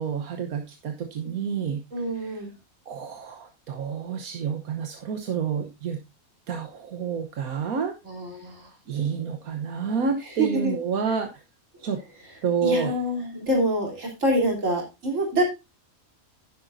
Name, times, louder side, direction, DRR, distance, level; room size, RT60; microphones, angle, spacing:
voice 1, 0.0-1.8 2.1-2.5 2.9-6.0 6.5-7.9 8.3-8.4 8.9-11.4 11.8-12.0 12.4-12.9, right 6 dB, 85° right, 4 dB, 1.5 m, -29 dB
voice 2, 1.9-2.5 8.1-8.7 10.4-10.7 12.6-15.4, right 1 dB, 60° right, -1 dB, 3.9 m, -26 dB
11.0 x 10.0 x 2.7 m, 0.25 s
omnidirectional pair, 1.5 m